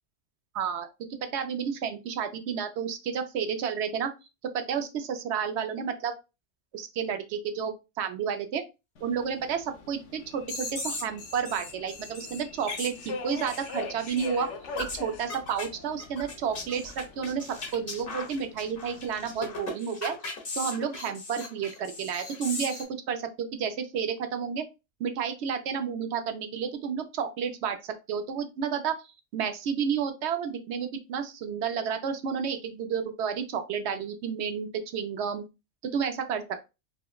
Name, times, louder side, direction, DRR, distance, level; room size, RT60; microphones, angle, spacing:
voice 1, 0.5-0.9 1.3-4.1 4.5-6.1 6.7-8.6 9.0-14.5 14.8-20.2 20.5-24.6 25.0-28.9 29.3-35.4 35.8-36.4, right 7 dB, 65° right, 7 dB, 0.8 m, -31 dB
Subway metro underground, 9.0-19.5, left 4 dB, 70° left, 1.0 m, -43 dB
sound 1, 10.5-13.8 14.1-14.3 14.8-15.0 15.3-15.7 16.0-22.8, left 3 dB, 45° left, 1.1 m, -38 dB
4.9 x 2.0 x 2.3 m, 0.27 s
omnidirectional pair, 1.3 m